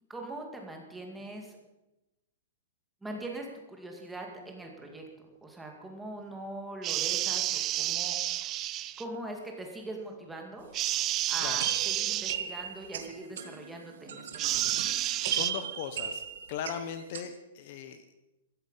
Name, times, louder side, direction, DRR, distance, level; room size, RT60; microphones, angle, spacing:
voice 1, 0.1-1.6 3.0-5.0 5.4-8.4 9.0-10.7 11.3-14.8, right 2 dB, 5° right, 1 dB, 2.1 m, -42 dB
sound 1, 6.8-9.0 10.7-12.4 14.4-15.5, right 14 dB, 20° right, 0.4 m, -30 dB
sound 2, 10.7-10.8 11.1-11.2 11.6-17.2, right 8 dB, 65° right, 2.2 m, -37 dB
voice 2, 15.0-16.2 16.5-18.2, left 8 dB, 40° left, 10 dB, 0.9 m, -39 dB
15.5 x 14.0 x 5.6 m, 0.99 s
hypercardioid pair, 175°, 0 cm